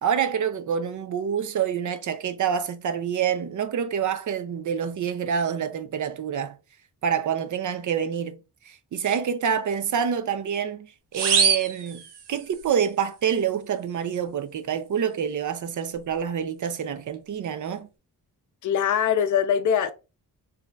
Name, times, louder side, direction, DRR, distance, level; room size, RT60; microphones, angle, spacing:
voice 1, 0.0-6.6 7.0-10.9 11.1-17.9, right 7 dB, 50° right, 0.5 m, -27 dB
sound 1, 11.1-12.7, right 7 dB, 80° right, 0.8 m, -24 dB
voice 2, 18.6-19.9, left 8 dB, 50° left, 0.5 m, -22 dB
4.1 x 2.7 x 2.3 m
wide cardioid pair, 130°, 40 cm